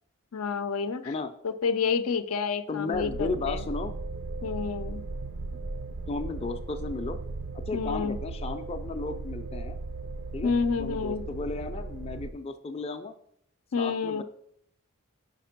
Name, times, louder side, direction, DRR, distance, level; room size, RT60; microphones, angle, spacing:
voice 1, 0.3-1.1 1.4-3.6 4.4-5.0 7.7-8.2 10.4-11.2 13.7-14.2, left 5 dB, 80° left, 11 dB, 0.5 m, -29 dB
voice 2, 2.7-4.0 6.1-7.2 7.5-9.8 10.3-10.5 10.8-13.1 13.8-14.2, left 3 dB, 25° left, 6 dB, 0.4 m, -34 dB
sound 1, 2.9-12.3, right 3 dB, 65° right, 0.4 m, -37 dB
5.3 x 5.1 x 5.8 m, 0.69 s
head